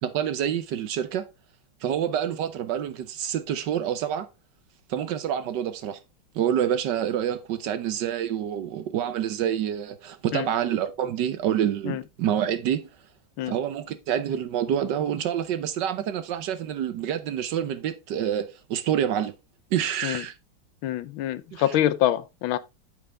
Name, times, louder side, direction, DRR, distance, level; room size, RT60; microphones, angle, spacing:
voice 1, 0.0-1.2 1.8-4.3 4.9-6.0 6.3-12.8 13.5-19.3 19.7-20.3 21.5-21.8, right 10 dB, 65° right, 1.3 m, -27 dB
voice 2, 20.8-22.6, left 12 dB, 80° left, 1.5 m, -25 dB
8.7 x 6.9 x 3.3 m
omnidirectional pair, 2.2 m